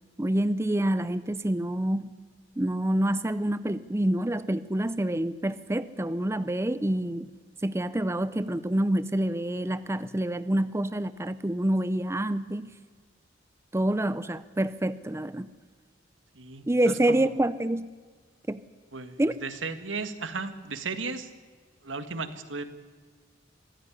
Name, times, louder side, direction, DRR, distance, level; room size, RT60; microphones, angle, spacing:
voice 1, 0.2-2.1 2.6-7.3 7.6-12.7 13.7-15.5 16.7-17.9 18.5-18.6 19.2-19.3, right 1 dB, 15° right, 14 dB, 0.6 m, -27 dB
voice 2, 16.4-17.3 18.9-21.3 21.8-22.6, right 4 dB, 85° right, 10 dB, 1.9 m, -35 dB
24.0 x 15.5 x 10.0 m, 1.5 s
head